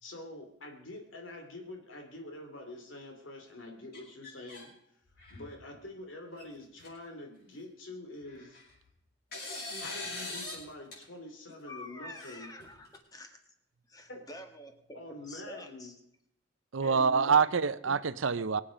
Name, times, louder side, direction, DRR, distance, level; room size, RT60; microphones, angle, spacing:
voice 1, 0.0-4.7 5.3-8.6 9.8-12.5 14.1-14.3 14.9-15.9 16.8-17.4, left 1 dB, 80° left, 2.7 m, -46 dB
sound 1, 3.9-4.7 5.1-5.6 6.4-6.5 6.8-6.9 8.2-8.8 9.3-10.6 10.9-11.0 12.1-13.0, left 2 dB, 50° left, 6.3 m, -42 dB
voice 2, 11.6-13.4 13.9-15.9, left 1 dB, 20° left, 1.7 m, -48 dB
voice 3, 16.7-18.6, right 5 dB, 85° right, 0.7 m, -26 dB
23.5 x 8.5 x 5.1 m
head